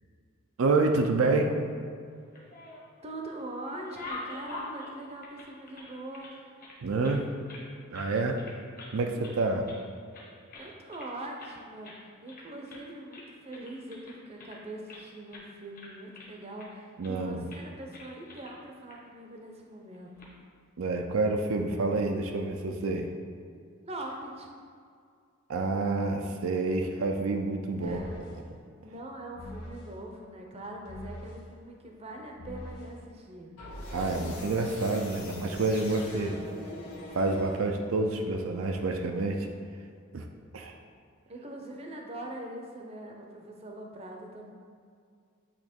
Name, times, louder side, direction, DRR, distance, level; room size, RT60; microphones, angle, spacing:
voice 1, 0.6-1.5 6.8-7.3 7.9-8.4 8.9-9.7 17.0-17.5 20.8-23.1 25.5-28.1 33.9-36.4 37.1-39.5 40.1-40.3 40.5-40.7, right 3 dB, 70° right, 3 dB, 0.5 m, -28 dB
sound 1, 2.2-3.0 3.4-6.3 6.6-7.7 7.9-8.1 8.4-9.0 9.2-9.8 10.1-11.1 11.4-11.6 11.8-12.0 12.3-12.9 13.1-15.0 15.3-15.5 15.7-16.7 17.0-17.2 17.5-17.6 17.9-18.5 18.9-19.0 19.9-20.3, left 2 dB, 40° left, 1.1 m, -45 dB
voice 2, 3.0-6.5 10.5-20.1 23.8-24.5 27.7-28.2 28.8-33.5 41.3-44.5, right 1 dB, 30° right, 1 dB, 0.6 m, -42 dB
sound 2, 27.8-28.4 29.3-29.9 30.8-31.4 32.4-32.9 33.6-38.0, left 1 dB, 85° left, 1.3 m, -42 dB
8.5 x 2.9 x 4.3 m, 2.2 s
head